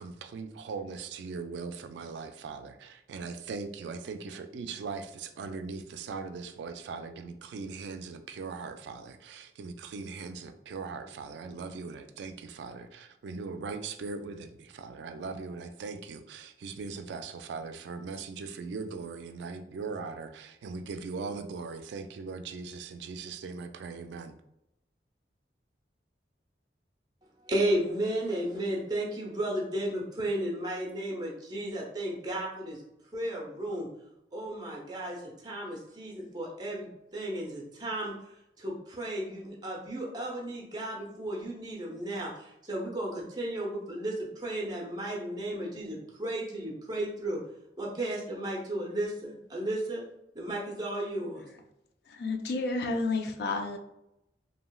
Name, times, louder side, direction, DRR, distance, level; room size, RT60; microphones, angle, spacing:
voice 1, 0.0-24.3, right 4 dB, 80° right, 8 dB, 0.3 m, -40 dB
voice 2, 27.4-32.8 33.1-33.9 34.3-38.1 38.6-47.4 47.8-50.0 50.3-51.4, right 1 dB, 25° right, -2 dB, 0.7 m, -34 dB
voice 3, 52.1-53.8, left 3 dB, 65° left, 5 dB, 0.4 m, -31 dB
3.0 x 2.7 x 2.3 m, 0.83 s
head